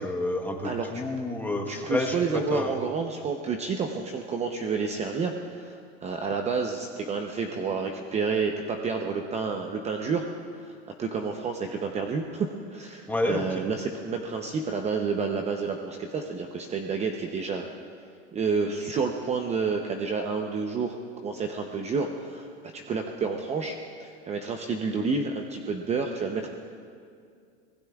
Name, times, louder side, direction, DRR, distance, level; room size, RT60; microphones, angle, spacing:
voice 1, 0.0-2.7 13.1-13.7, left 2 dB, 5° left, 1 dB, 1.2 m, -29 dB
voice 2, 0.6-1.0 1.7-10.3 10.5-17.7 18.3-21.0 21.2-22.5 22.7-26.5, right 5 dB, 20° right, 3 dB, 0.7 m, -30 dB
25.5 x 19.5 x 2.4 m, 2.3 s
supercardioid pair, 135°, 33 cm